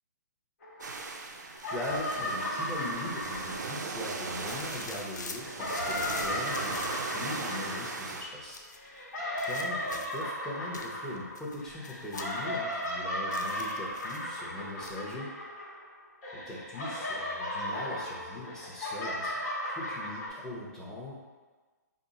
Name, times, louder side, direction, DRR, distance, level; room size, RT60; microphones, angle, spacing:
sound 1, 0.6-1.3 1.5-4.8 5.4-15.9 16.2-20.3, left 1 dB, 60° left, 1.2 m, -36 dB
sound 2, 0.8-8.2, right 4 dB, 80° right, 0.4 m, -38 dB
voice 1, 1.7-9.1 9.4-15.3 16.3-19.4 19.8-21.1, left 1 dB, 5° left, -7 dB, 0.8 m, -40 dB
sound 3, 4.4-7.6 8.4-8.9 9.4-10.3 10.7-13.0 13.3-14.4 14.8-15.1, left 4 dB, 85° left, 0.4 m, -45 dB
3.5 x 2.1 x 3.9 m, 1.3 s
hypercardioid pair, 135°, 9 cm